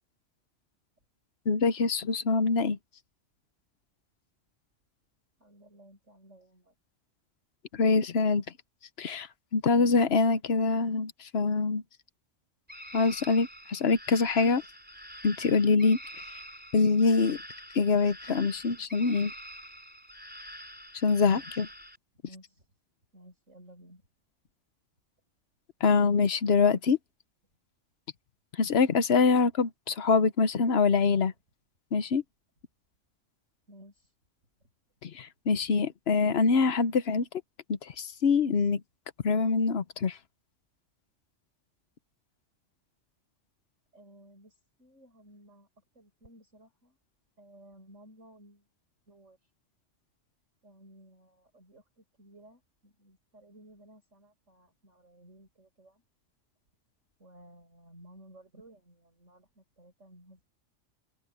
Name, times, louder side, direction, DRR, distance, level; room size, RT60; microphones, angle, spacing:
voice 1, 1.5-2.8 7.7-8.4 9.0-9.3 9.5-11.8 12.9-14.6 15.2-16.0 16.7-17.4 17.7-19.3 21.0-21.7 25.8-27.0 28.6-31.3 31.9-32.2 35.0-37.3 37.7-38.8 39.2-40.2, left 4 dB, 60° left, 1.1 m, -24 dB
voice 2, 5.4-6.7 22.2-22.7 23.1-24.0 33.7-34.1 43.9-45.7 45.9-47.0 47.4-48.7 49.1-49.5 50.6-56.0 57.2-60.5, right 1 dB, 75° right, 8.3 m, -56 dB
monkey-scream-long, 12.7-22.0, equal, 5° right, 4.4 m, -46 dB
open air
omnidirectional pair, 1.3 m